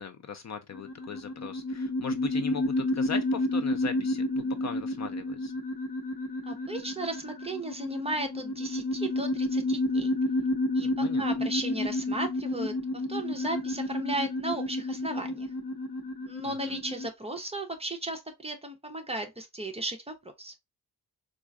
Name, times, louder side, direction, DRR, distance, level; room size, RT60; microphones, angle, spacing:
voice 1, 0.0-5.5 10.8-11.3 16.5-16.8, left 6 dB, 45° left, 0.4 m, -39 dB
sound 1, 0.7-17.1, left 1 dB, 85° left, 1.1 m, -30 dB
voice 2, 6.5-10.1 10.7-12.7 13.1-15.5 16.2-20.5, right 1 dB, 15° right, 0.6 m, -35 dB
4.4 x 2.4 x 2.3 m
wide cardioid pair, 165°, 39 cm